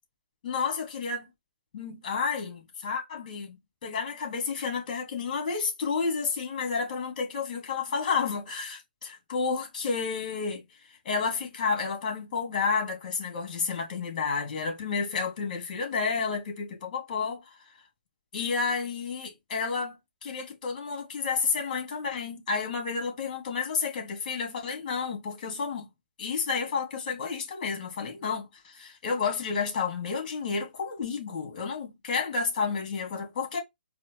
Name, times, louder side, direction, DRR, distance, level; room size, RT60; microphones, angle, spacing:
voice 1, 0.4-1.3 1.7-3.6 3.8-10.6 11.1-17.4 18.3-20.0 20.2-25.9 26.2-33.6, left 5 dB, 45° left, 2.0 m, -31 dB
4.1 x 2.5 x 3.0 m
hypercardioid pair, 145°, 5 cm